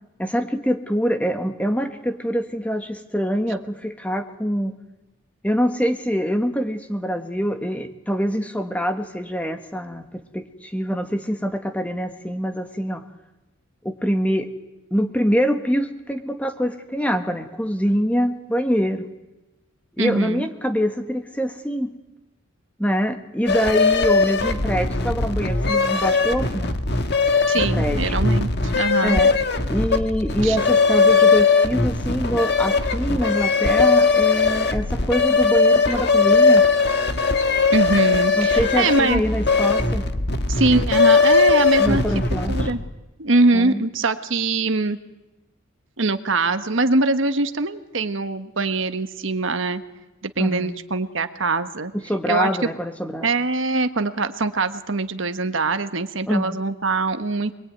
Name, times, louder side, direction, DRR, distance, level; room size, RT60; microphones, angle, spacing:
voice 1, 0.2-4.7 5.4-13.0 13.8-14.5 14.9-19.1 20.0-21.9 22.8-26.7 27.5-28.2 29.0-29.3 29.7-36.7 38.4-40.1 41.8-42.7 43.5-43.8 50.4-50.8 51.9-53.3 56.3-56.6, equal, 5° left, 7 dB, 1.5 m, -24 dB
voice 2, 20.0-20.5 27.5-29.2 30.4-30.6 37.7-39.2 40.5-42.0 42.5-42.8 43.2-45.0 46.0-49.8 50.2-51.9 52.3-52.5 53.2-57.5, right 3 dB, 60° right, 9 dB, 1.3 m, -23 dB
sound 1, 23.5-42.9, left 4 dB, 50° left, 1.6 m, -19 dB
26.0 x 22.0 x 9.4 m, 1.0 s
head